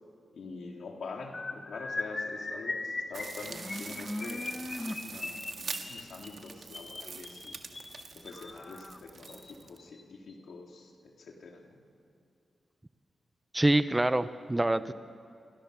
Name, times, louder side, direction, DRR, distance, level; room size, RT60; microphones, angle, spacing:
voice 1, 0.3-7.6 8.1-11.8 14.8-14.9, left 4 dB, 80° left, 1 dB, 3.6 m, -45 dB
sound 1, 1.3-8.5 9.3-9.5 9.8-10.0 10.3-10.5, left 3 dB, 40° left, 1.9 m, -39 dB
sound 2, 3.1-9.9, left 1 dB, 15° left, 1.0 m, -44 dB
sound 3, 3.1-9.8, right 5 dB, 60° right, 1.9 m, -44 dB
voice 2, 13.5-14.9, right 1 dB, 15° right, 13 dB, 0.7 m, -26 dB
28.0 x 24.0 x 7.0 m, 2.4 s
cardioid pair, 85°, 0 cm